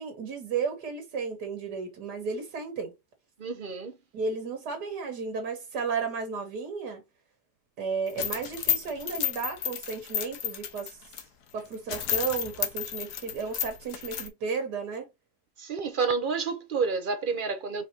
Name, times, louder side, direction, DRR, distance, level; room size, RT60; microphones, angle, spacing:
voice 1, 0.0-2.9 4.1-7.0 7.8-11.0 11.5-15.1, right 5 dB, 80° right, 1.9 m, -33 dB
voice 2, 3.4-4.0 15.6-17.9, right 5 dB, 50° right, 0.6 m, -29 dB
sound 1, 8.1-11.2 11.6-11.7 11.9-14.3, left 10 dB, 75° left, 1.3 m, -31 dB
4.9 x 3.8 x 2.8 m
omnidirectional pair, 1.7 m